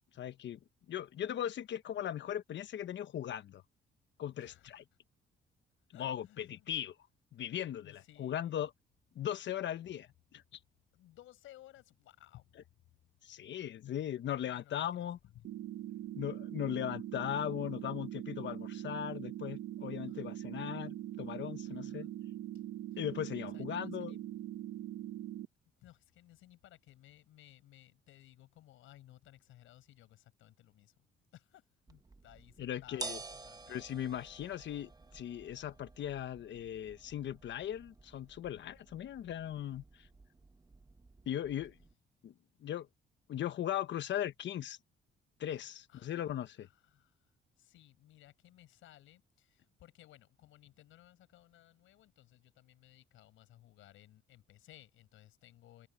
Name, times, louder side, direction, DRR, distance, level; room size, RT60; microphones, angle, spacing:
voice 1, 0.1-0.6 0.9-3.6 4.2-4.8 5.9-6.9 7.3-8.7 9.1-10.4 13.2-15.2 16.1-22.1 23.0-24.2 32.6-33.2 33.7-40.1 41.3-41.8 42.2-42.3 42.6-42.9 43.3-44.8 45.4-46.7, left 10 dB, 65° left, 1.2 m, -38 dB
voice 2, 4.4-4.8 5.9-6.7 7.8-8.6 10.9-12.6 14.5-15.1 15.3-15.5 20.1-20.4 21.6-22.1 22.5-22.6 22.9-23.0 23.4-24.2 25.8-30.9 31.3-33.8 45.9-47.2 47.6-55.9, left 14 dB, 85° left, 6.5 m, -60 dB
sound 1, 15.4-25.5, right 12 dB, 80° right, 1.2 m, -42 dB
sound 2, 31.9-41.9, right 2 dB, 20° right, 1.1 m, -51 dB
cardioid pair, 90°, 20 cm